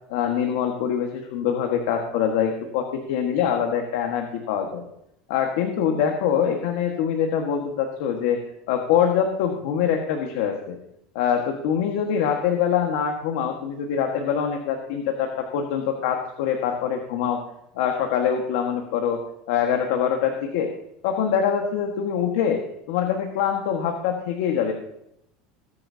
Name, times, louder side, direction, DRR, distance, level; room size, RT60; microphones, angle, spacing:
voice 1, 0.1-4.8 5.3-8.4 8.7-10.8 11.1-17.4 17.7-19.2 19.5-20.7 21.0-22.6 22.9-24.7, left 8 dB, 75° left, 3 dB, 1.6 m, -24 dB
19.0 x 9.9 x 2.8 m, 0.78 s
supercardioid pair, 145°, 0 cm